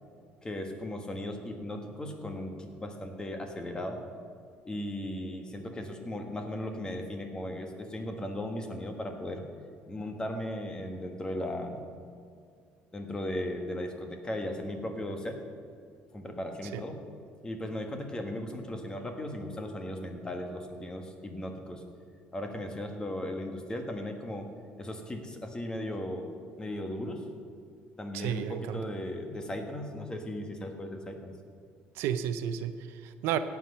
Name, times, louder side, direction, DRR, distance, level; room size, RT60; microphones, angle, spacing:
voice 1, 0.4-4.0 4.6-9.5 9.9-11.9 12.9-15.4 16.1-17.0 17.4-21.8 22.3-24.5 24.8-26.3 26.6-27.3 28.0-31.3, left 1 dB, 20° left, 4 dB, 1.6 m, -37 dB
voice 2, 28.1-28.8 31.9-33.4, right 9 dB, 80° right, 11 dB, 0.6 m, -32 dB
17.5 x 6.2 x 5.7 m, 2.2 s
supercardioid pair, 95°, 4 cm